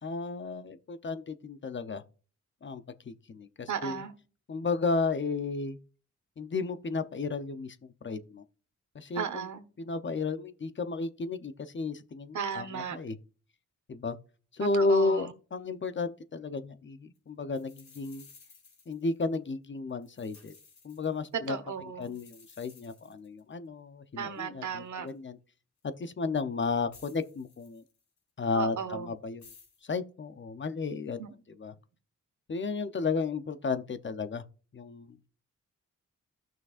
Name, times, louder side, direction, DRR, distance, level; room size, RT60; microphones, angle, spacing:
voice 1, 0.0-2.0 2.6-4.0 4.5-5.8 6.4-7.8 8.0-8.4 8.9-9.5 9.8-13.2 13.9-14.2 14.5-18.3 18.9-20.5 20.8-21.6 22.0-25.4 25.8-27.8 28.4-29.4 29.8-31.2 31.6-31.7 32.5-34.4 34.7-35.2, left 3 dB, 40° left, 0.7 m, -33 dB
voice 2, 3.7-4.1 9.1-9.6 12.3-13.0 14.7-15.3 21.5-22.1 24.2-25.1 28.5-29.1 31.2-31.3, right 7 dB, 70° right, 1.3 m, -36 dB
sound 1, 17.2-17.3 17.5-19.5 19.9-21.5 22.0-23.5 24.4-24.5 25.1-25.2 25.8-25.9 26.9-28.2 29.4-29.8, left 5 dB, 65° left, 3.7 m, -57 dB
14.5 x 6.1 x 2.5 m
cardioid pair, 90°, 31 cm